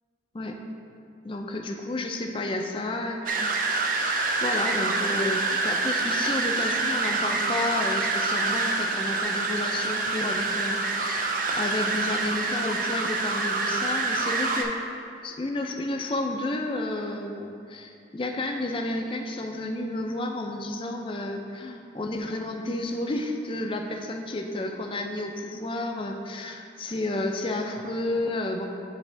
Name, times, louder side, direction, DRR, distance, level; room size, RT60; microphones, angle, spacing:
voice 1, 1.2-3.5 3.9-28.7, left 2 dB, 30° left, 3 dB, 0.4 m, -31 dB
sound 1, 3.3-14.6, right 3 dB, 45° right, 0.5 m, -26 dB
9.9 x 3.5 x 3.3 m, 2.6 s
head